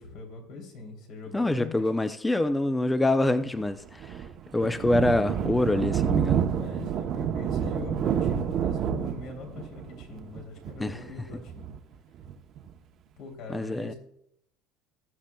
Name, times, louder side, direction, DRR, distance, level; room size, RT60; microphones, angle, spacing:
voice 1, 0.0-1.9 6.6-11.7 13.2-13.9, left 4 dB, 60° left, 2.9 m, -42 dB
voice 2, 1.3-4.2 4.5-6.4 10.8-11.0 13.5-13.9, left 2 dB, 10° left, 0.4 m, -25 dB
Thunder, 3.6-12.7, right 8 dB, 45° right, 0.7 m, -29 dB
18.5 x 7.4 x 2.2 m
cardioid pair, 135°, 0 cm